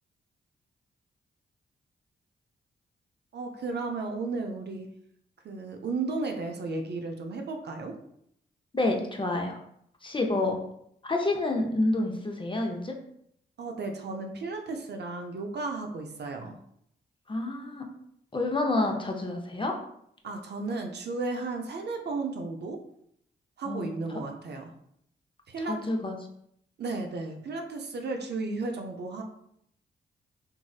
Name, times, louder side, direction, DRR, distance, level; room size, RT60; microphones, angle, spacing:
voice 1, 3.3-4.9 5.4-8.0 13.6-16.6 20.2-22.8 23.6-24.7 25.5-25.9 26.8-29.2, right 3 dB, 55° right, 3 dB, 0.5 m, -34 dB
voice 2, 8.7-9.6 10.0-10.6 11.0-13.0 17.3-17.9 18.3-19.8 23.7-24.0 25.7-26.2, left 2 dB, 25° left, 2 dB, 0.6 m, -28 dB
3.0 x 2.7 x 2.3 m, 0.71 s
supercardioid pair, 45°, 21 cm